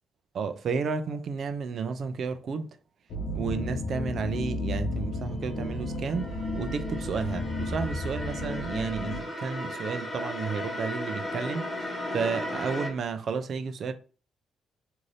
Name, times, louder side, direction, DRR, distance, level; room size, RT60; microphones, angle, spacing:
voice 1, 0.3-2.7 3.3-13.9, right 5 dB, 55° right, 0.4 m, -32 dB
sound 1, 3.1-9.2, left 2 dB, 60° left, 0.7 m, -33 dB
sound 2, 5.2-12.9, left 1 dB, 20° left, 1.0 m, -36 dB
2.6 x 2.6 x 3.2 m
cardioid pair, 90°, 0 cm